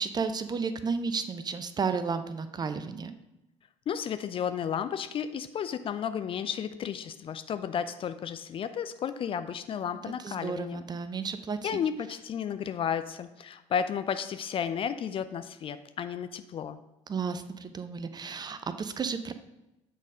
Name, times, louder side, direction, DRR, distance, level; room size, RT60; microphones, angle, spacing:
voice 1, 0.0-3.1 10.2-11.7 17.1-19.3, right 5 dB, 25° right, 11 dB, 0.6 m, -32 dB
voice 2, 3.9-10.8 11.6-16.8, left 8 dB, 35° left, 11 dB, 0.4 m, -33 dB
8.2 x 4.1 x 4.9 m, 0.94 s
figure-of-eight pair, 55°, 16 cm